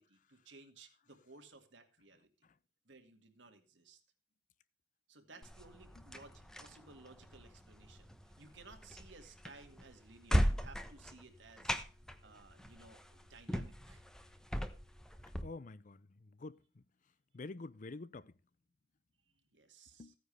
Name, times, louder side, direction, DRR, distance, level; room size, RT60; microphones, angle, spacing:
voice 1, 0.0-2.3 2.9-4.0 5.1-11.8 12.2-14.0 19.5-20.1, right 3 dB, 80° right, 2.1 m, -58 dB
sound 1, 5.4-15.4, equal, 5° left, 0.9 m, -39 dB
voice 2, 15.4-16.8 17.3-18.3 20.0-20.2, left 3 dB, 45° left, 0.5 m, -48 dB
15.5 x 9.5 x 3.3 m
head